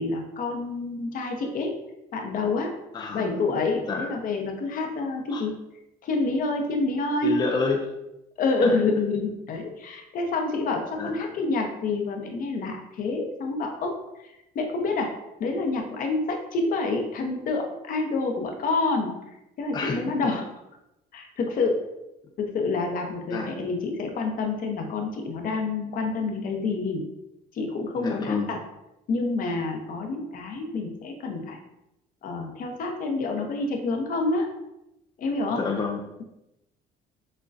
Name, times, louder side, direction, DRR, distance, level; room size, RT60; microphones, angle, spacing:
voice 1, 0.0-1.7 2.1-2.7 3.1-5.5 6.0-7.4 8.4-15.1 15.4-19.1 19.6-20.5 21.1-21.8 22.4-27.0 27.5-28.6 29.1-31.6 32.2-34.5 35.2-35.6, left 3 dB, 55° left, 3 dB, 0.7 m, -28 dB
voice 2, 2.9-3.4 3.9-4.1 5.3-5.4 7.2-7.9 8.6-8.8 11.0-11.1 19.7-20.0 23.3-23.5 28.0-28.6 35.6-36.1, left 4 dB, 25° left, 1 dB, 0.4 m, -29 dB
6.3 x 2.2 x 2.5 m, 0.89 s
cardioid pair, 110°, 17 cm